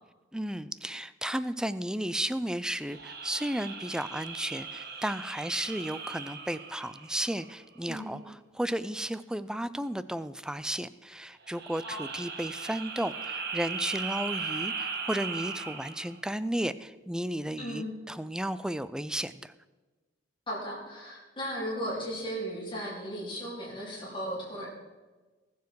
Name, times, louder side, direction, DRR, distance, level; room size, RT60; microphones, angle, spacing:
voice 1, 0.3-19.5, right 1 dB, 5° right, 14 dB, 0.3 m, -34 dB
sound 1, 2.8-7.6 11.4-16.2, right 5 dB, 55° right, 1.5 m, -38 dB
voice 2, 7.8-8.2 11.8-12.1 17.6-18.0 20.5-24.7, equal, 25° left, -6 dB, 3.7 m, -36 dB
19.5 x 7.1 x 4.7 m, 1.3 s
head